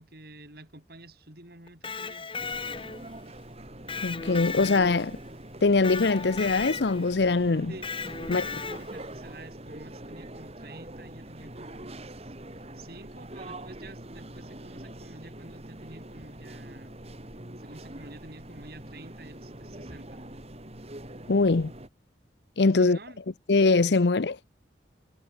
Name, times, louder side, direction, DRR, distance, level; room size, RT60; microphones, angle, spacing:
voice 1, 0.0-2.3 7.7-7.9 8.2-17.0 17.6-20.3 22.7-23.2, right 2 dB, 60° right, 6.4 m, -49 dB
Electric guitar, 1.7-3.2 3.9-5.3 5.8-7.1 7.8-9.1, left 5 dB, 30° left, 2.9 m, -36 dB
sound 1, 2.4-21.9, right 1 dB, 35° right, 3.5 m, -44 dB
voice 2, 4.0-5.2 5.6-7.7 8.3-8.5 21.3-21.7 22.6-23.0 23.5-24.4, left 3 dB, 70° left, 0.7 m, -22 dB
head